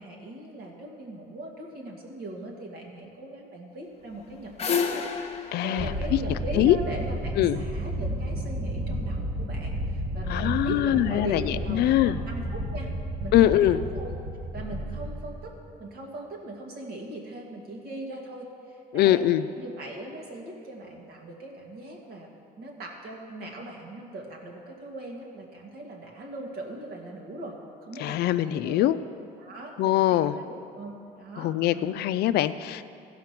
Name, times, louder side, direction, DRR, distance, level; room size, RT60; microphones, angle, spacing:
voice 1, 0.0-5.0 5.3-12.9 13.2-14.1 14.5-15.5 15.8-19.2 19.6-22.3 22.6-27.5 27.8-28.9 29.4-32.0, right 1 dB, 65° right, -1 dB, 2.1 m, -40 dB
sound 1, 4.1-7.2, left 6 dB, 40° left, 0.9 m, -31 dB
voice 2, 5.5-5.9 6.5-6.8 7.4-7.6 10.3-12.2 13.3-13.8 18.9-19.4 28.0-29.0 29.8-30.3 31.4-32.8, left 13 dB, 70° left, 13 dB, 0.4 m, -23 dB
sound 2, 5.8-15.9, right 1 dB, 45° right, 1.6 m, -32 dB
15.0 x 5.7 x 5.9 m, 2.6 s
cardioid pair, 110°, 17 cm